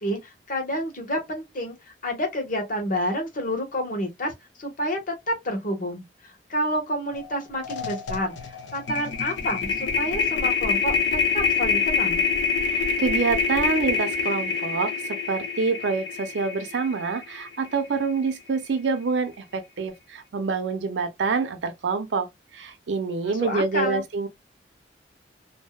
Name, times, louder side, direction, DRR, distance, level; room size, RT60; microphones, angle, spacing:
voice 1, 0.0-1.7 2.0-4.3 4.6-10.9 11.3-12.2 23.2-24.0, equal, 50° left, 1.0 m, -29 dB
sound 1, 7.1-7.3 7.6-17.9, left 5 dB, 85° left, 0.6 m, -26 dB
voice 2, 12.6-22.3 22.5-24.3, right 4 dB, 75° right, 0.5 m, -26 dB
2.6 x 2.1 x 2.3 m
head